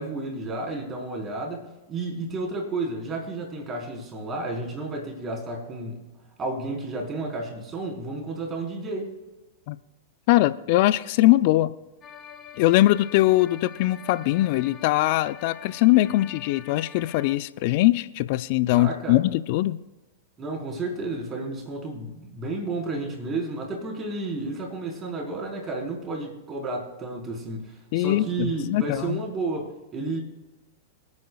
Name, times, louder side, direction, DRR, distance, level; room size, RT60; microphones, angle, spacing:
voice 1, 0.0-6.1 6.4-9.1 18.7-19.2 20.4-30.2, right 2 dB, 25° right, -1 dB, 4.3 m, -32 dB
voice 2, 10.3-11.7 12.6-19.8 27.9-29.2, left 17 dB, 55° left, 14 dB, 0.5 m, -21 dB
sound 1, 12.0-17.4, left 8 dB, 30° left, 1.3 m, -45 dB
26.5 x 9.6 x 2.4 m, 1.1 s
hypercardioid pair, 105°, 0 cm